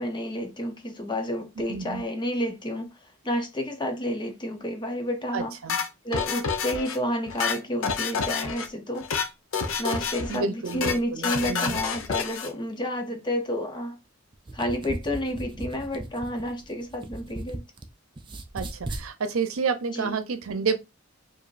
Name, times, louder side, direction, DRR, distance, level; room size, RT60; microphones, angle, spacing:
voice 1, 0.0-2.9 3.2-5.5 6.0-9.1 9.8-14.0 14.5-17.6 19.9-20.1, equal, 20° left, 0.7 m, -30 dB
voice 2, 1.6-2.0 5.3-5.8 10.3-11.8 18.5-20.8, right 5 dB, 90° right, 0.6 m, -30 dB
sound 1, 5.7-7.0 7.3-8.7 9.0-9.3 9.5-10.4 10.7-11.0 11.2-12.5, left 5 dB, 80° left, 0.7 m, -28 dB
sound 2, 14.3-17.9 18.2-19.1, right 2 dB, 25° right, 0.5 m, -37 dB
4.9 x 2.5 x 2.5 m
head